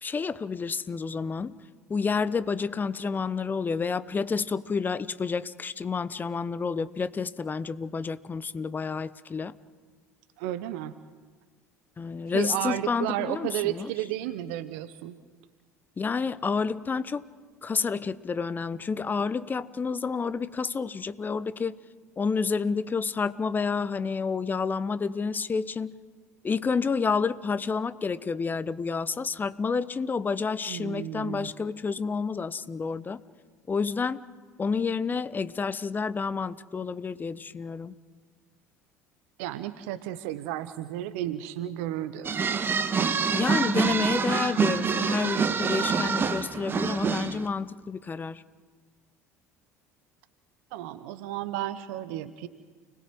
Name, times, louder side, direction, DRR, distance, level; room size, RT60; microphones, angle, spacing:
voice 1, 0.0-1.6 1.9-9.6 12.0-13.9 16.0-17.2 17.6-21.7 22.2-25.9 26.4-33.2 33.7-34.2 34.6-37.9 43.3-48.4, left 5 dB, 20° left, 16 dB, 1.0 m, -29 dB
voice 2, 10.4-11.0 12.3-15.2 30.7-31.5 39.4-42.4 50.7-52.5, right 13 dB, 60° right, 13 dB, 1.0 m, -33 dB
sound 1, 42.2-47.5, right 5 dB, 25° right, 1.6 m, -26 dB
30.0 x 20.0 x 7.7 m, 1.5 s
figure-of-eight pair, 65°, 8 cm